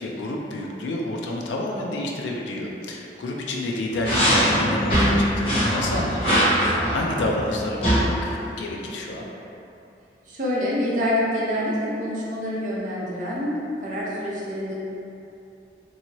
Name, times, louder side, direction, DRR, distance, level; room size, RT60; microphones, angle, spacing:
voice 1, 0.0-6.5 6.9-9.2, left 1 dB, 90° left, -1 dB, 0.4 m, -29 dB
sound 1, 3.9-8.0, equal, 30° left, 1.1 m, -21 dB
voice 2, 10.3-14.8, left 1 dB, 45° right, -6 dB, 0.6 m, -26 dB
2.6 x 2.6 x 2.9 m, 2.8 s
head